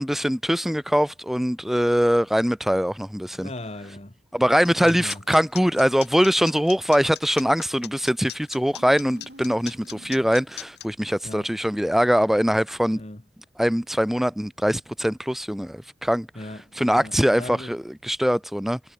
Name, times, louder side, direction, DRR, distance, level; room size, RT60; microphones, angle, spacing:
voice 1, 0.0-3.5 4.3-13.0 13.6-16.3 16.8-18.8, equal, ahead, 0.6 m, -22 dB
voice 2, 3.3-4.2 4.8-5.2 11.2-11.5 12.9-13.2 16.3-17.8, left 1 dB, 35° left, 1.9 m, -38 dB
sound 1, 4.6-10.9, left 13 dB, 65° left, 6.5 m, -39 dB
sound 2, 8.7-10.7, right 1 dB, 70° right, 4.8 m, -48 dB
head